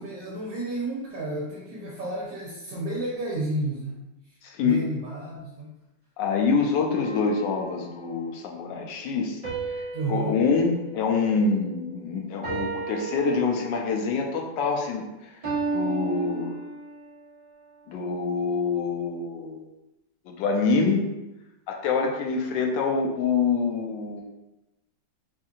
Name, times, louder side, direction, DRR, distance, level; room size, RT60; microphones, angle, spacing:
voice 1, 0.0-5.7 9.9-10.4, right 2 dB, 75° right, -6 dB, 1.4 m, -32 dB
voice 2, 4.4-4.8 6.2-9.4 10.1-15.3 15.7-16.5 17.9-19.6 20.3-21.0 21.7-24.2, left 4 dB, 80° left, 1 dB, 1.3 m, -26 dB
sound 1, 7.0-8.4 9.4-11.9 12.4-14.0 15.4-17.1, right 3 dB, 20° right, 1.1 m, -34 dB
4.3 x 2.7 x 2.4 m, 0.97 s
omnidirectional pair, 2.0 m